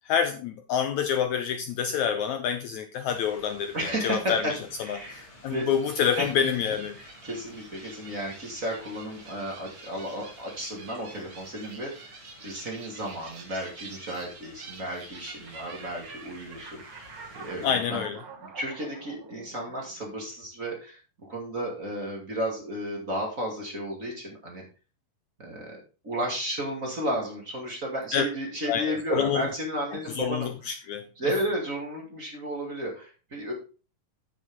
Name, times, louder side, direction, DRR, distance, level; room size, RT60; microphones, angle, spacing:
voice 1, 0.0-4.6 4.9-7.0 17.6-18.2 28.1-28.2 28.7-29.5 29.9-31.1, left 8 dB, 75° left, 8 dB, 1.8 m, -27 dB
sound 1, 3.0-17.8, left 1 dB, 45° left, 7.0 m, -53 dB
voice 2, 3.7-4.5 4.8-5.7 6.2-6.3 7.2-18.0 18.4-24.6 25.4-25.8 26.0-30.5 31.2-33.5, right 1 dB, 25° right, -1 dB, 2.4 m, -33 dB
sound 2, 5.6-20.2, right 4 dB, 45° right, 2.4 m, -47 dB
10.0 x 8.1 x 3.6 m, 0.34 s
omnidirectional pair, 3.9 m